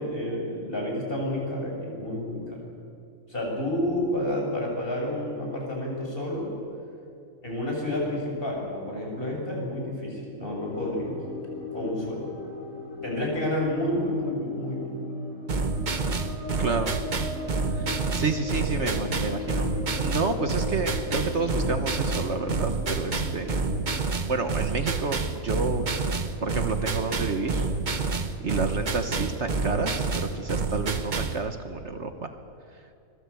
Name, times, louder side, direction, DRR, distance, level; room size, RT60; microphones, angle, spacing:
voice 1, 0.0-2.7 3.3-6.5 7.4-11.2 11.7-12.3 13.0-14.9 18.5-19.0, left 1 dB, 40° left, -2 dB, 7.2 m, -30 dB
sound 1, 10.6-24.0, left 3 dB, 65° left, 3.3 m, -38 dB
sound 2, 15.5-31.4, right 4 dB, 35° right, 1.2 m, -28 dB
voice 2, 16.6-16.9 17.7-19.7 20.0-23.7 24.3-25.9 26.4-27.7 28.4-30.1 30.3-32.3, right 4 dB, 55° right, 7 dB, 1.5 m, -29 dB
25.0 x 20.5 x 8.3 m, 2.6 s
omnidirectional pair, 1.4 m